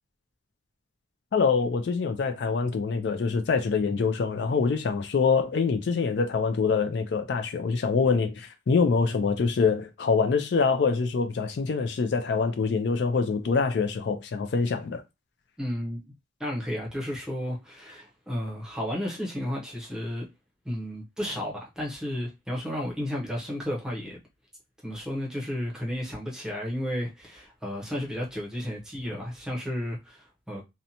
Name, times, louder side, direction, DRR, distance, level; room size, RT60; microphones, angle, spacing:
voice 1, 1.3-15.0, left 5 dB, 60° left, 0.3 m, -25 dB
voice 2, 15.6-16.1 16.4-20.3 20.6-24.2 24.8-30.6, equal, 5° right, 0.7 m, -33 dB
2.6 x 2.1 x 2.8 m
head